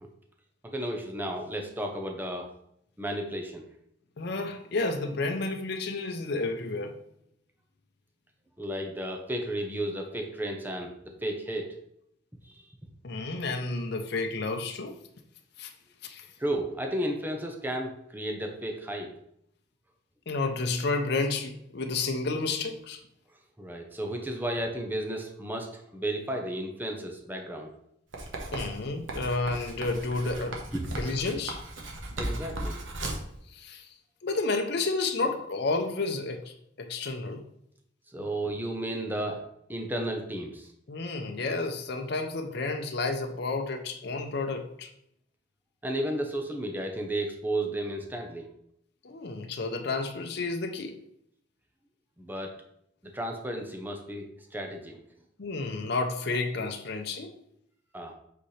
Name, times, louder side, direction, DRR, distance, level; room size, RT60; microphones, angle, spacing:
voice 1, 0.7-2.5 3.0-3.6 8.6-11.7 12.4-12.5 16.4-19.1 23.6-27.7 30.7-30.8 32.2-32.8 38.1-39.4 39.7-40.7 45.8-48.5 52.2-52.5 53.1-55.0 57.9-58.1, right 1 dB, 10° right, 0.8 m, -33 dB
voice 2, 4.2-7.0 13.0-15.0 15.6-15.7 16.0-16.2 20.3-23.0 28.5-30.6 31.0-31.6 33.5-33.9 34.2-37.4 40.9-44.9 49.0-51.0 55.4-57.3, left 3 dB, 60° left, 0.7 m, -31 dB
Writing, 28.1-33.3, right 1 dB, 85° right, 1.3 m, -36 dB
7.9 x 4.3 x 3.3 m
head